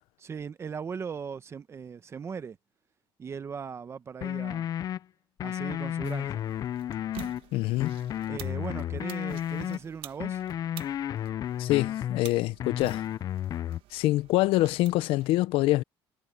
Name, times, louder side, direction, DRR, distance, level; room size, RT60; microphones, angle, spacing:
voice 1, 0.2-2.6 3.2-4.7 5.4-6.4 8.3-10.4, right 6 dB, 30° right, 0.9 m, -38 dB
sound 1, 4.2-5.0 5.4-7.4 7.8-9.8 10.2-12.2 12.6-13.8, left 11 dB, 40° left, 0.4 m, -32 dB
sound 2, 6.0-15.3, right 15 dB, 75° right, 1.4 m, -50 dB
voice 2, 7.5-7.9 11.6-13.0 13.9-15.8, left 17 dB, 75° left, 0.7 m, -25 dB
cardioid pair, 130°, 9 cm